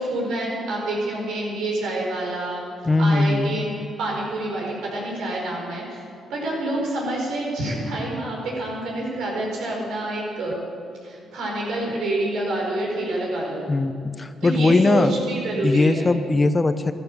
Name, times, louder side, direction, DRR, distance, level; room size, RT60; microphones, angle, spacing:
voice 1, 0.0-2.7 3.0-6.0 6.3-10.6 11.0-13.7 14.4-16.1, right 1 dB, 80° right, -2 dB, 4.9 m, -27 dB
voice 2, 2.9-3.6 13.7-15.1 15.6-16.9, left 2 dB, 25° left, 11 dB, 0.8 m, -20 dB
14.0 x 13.5 x 6.9 m, 2.4 s
cardioid pair, 85°, 0 cm